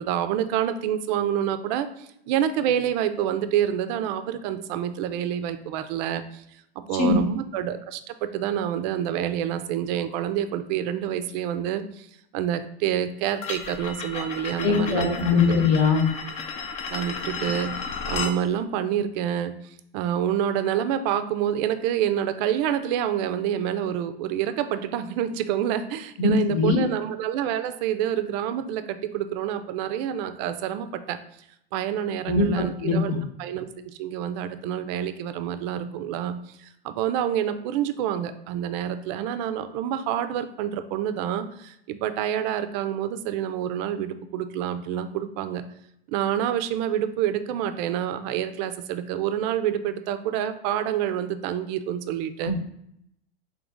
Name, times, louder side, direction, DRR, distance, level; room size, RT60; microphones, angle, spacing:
voice 1, 0.0-6.4 6.8-12.1 12.3-15.2 15.5-15.6 16.9-17.7 18.1-19.6 19.9-31.2 31.7-45.6 46.1-52.5, right 10 dB, 45° right, 11 dB, 0.4 m, -27 dB
sound 1, 13.4-18.4, left 5 dB, 20° left, 0.3 m, -33 dB
voice 2, 14.6-16.0 26.2-26.8 32.3-33.2 52.4-52.5, left 4 dB, 50° left, 3 dB, 1.0 m, -21 dB
3.9 x 2.9 x 3.5 m, 0.75 s
hypercardioid pair, 105°, 31 cm